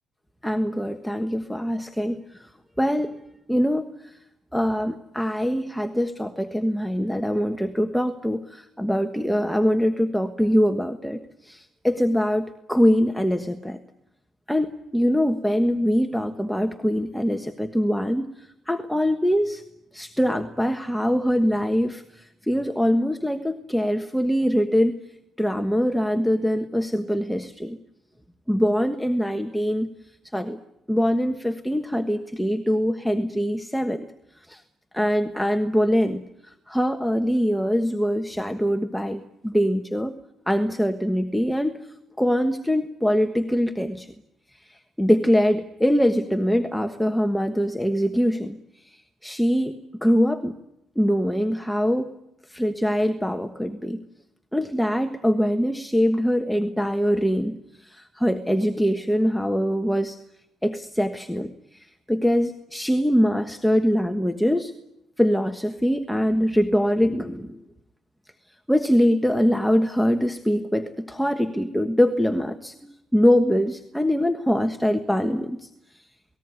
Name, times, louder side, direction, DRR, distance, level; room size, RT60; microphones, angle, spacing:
voice 1, 0.4-2.2 2.8-3.2 3.5-3.9 4.5-13.8 14.5-19.6 19.9-25.0 25.4-27.8 28.5-29.9 30.3-30.6 30.9-34.1 34.5-34.6 34.9-36.2 36.7-40.1 40.5-41.8 42.2-44.1 44.6-50.5 51.0-52.1 52.5-54.0 54.5-60.2 60.6-64.7 65.2-67.6 68.7-75.7, equal, 5° left, 7 dB, 1.3 m, -23 dB
28.0 x 20.0 x 9.7 m, 0.88 s
cardioid pair, 90°, 0 cm